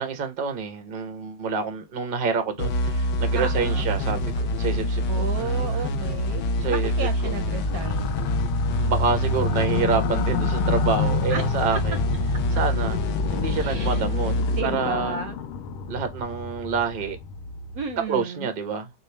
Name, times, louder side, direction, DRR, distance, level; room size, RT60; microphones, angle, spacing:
voice 1, 0.0-5.3 6.6-6.9 7.2-7.3 8.8-12.0 12.6-13.0 13.3-14.3 14.6-15.2 15.9-17.2 18.1-18.9, right 5 dB, 90° right, 0.4 m, -27 dB
sound 1, 2.6-15.9, equal, 65° left, 1.2 m, -26 dB
voice 2, 3.3-3.9 5.1-8.1 11.3-11.4 11.7-11.8 13.5-14.1 14.5-15.4 17.7-18.5, right 5 dB, 70° right, 0.8 m, -33 dB
sound 2, 7.5-18.0, left 8 dB, 85° left, 1.4 m, -30 dB
5.2 x 2.0 x 3.2 m
omnidirectional pair, 2.2 m